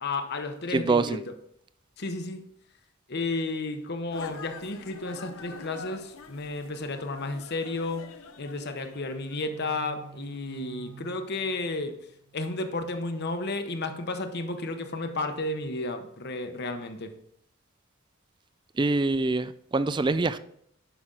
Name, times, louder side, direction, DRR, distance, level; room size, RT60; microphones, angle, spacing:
voice 1, 0.0-1.2 2.0-2.4 3.1-8.1 8.4-11.9 12.3-17.1, left 2 dB, 55° left, 0.9 m, -32 dB
voice 2, 0.7-1.2 18.8-20.4, right 3 dB, 20° right, 0.4 m, -25 dB
sound 1, 4.1-9.7, left 4 dB, 80° left, 0.7 m, -45 dB
sound 2, 8.7-12.7, right 6 dB, 65° right, 1.4 m, -49 dB
10.0 x 6.0 x 3.9 m
head